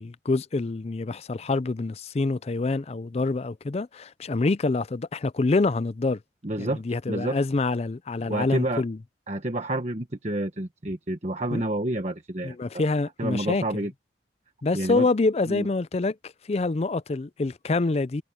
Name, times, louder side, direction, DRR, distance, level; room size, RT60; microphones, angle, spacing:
voice 1, 0.0-6.2 6.6-9.0 11.5-11.6 12.4-13.8 14.6-18.2, left 3 dB, 35° left, 0.4 m, -26 dB
voice 2, 6.4-6.8 7.1-7.4 8.2-8.8 9.3-12.8 13.2-13.9 14.7-15.1 15.5-15.7, right 1 dB, 40° right, 1.2 m, -29 dB
head